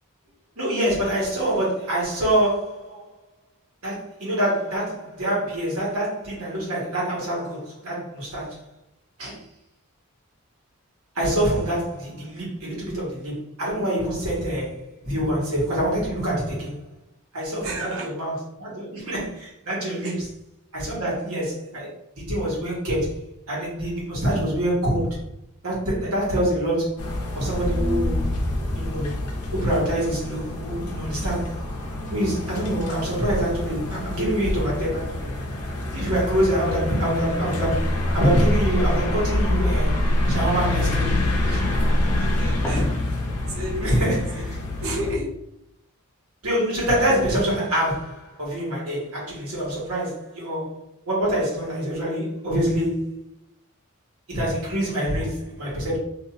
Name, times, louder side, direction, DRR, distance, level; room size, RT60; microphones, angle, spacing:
voice 1, 0.6-2.9 3.8-8.6 9.2-9.4 11.1-16.7 17.3-20.1 20.7-25.2 25.6-28.3 28.7-29.1 29.5-31.5 32.1-35.3 35.9-39.9 40.3-41.1 41.5-41.6 43.8-44.3 46.4-50.8 51.1-53.1 54.3-56.0, right 1 dB, 85° right, -5 dB, 1.5 m, -25 dB
voice 2, 17.6-18.2 20.0-20.2 42.1-42.9 43.5-44.4 44.8-45.3, equal, 65° right, -3 dB, 0.8 m, -32 dB
sound 1, 27.0-45.2, left 2 dB, 90° left, 0.6 m, -27 dB
sound 2, 37.7-43.0, equal, 10° left, 0.8 m, -26 dB
2.9 x 2.4 x 3.1 m, 0.78 s
head